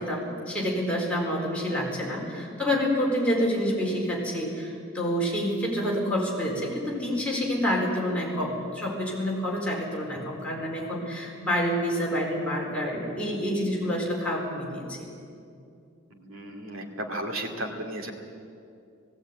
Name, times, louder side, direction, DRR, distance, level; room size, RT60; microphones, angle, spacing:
voice 1, 0.0-15.1, equal, 5° left, -4 dB, 4.2 m, -28 dB
voice 2, 16.1-18.1, right 1 dB, 70° right, 3 dB, 2.5 m, -34 dB
18.0 x 16.5 x 9.4 m, 2.5 s
head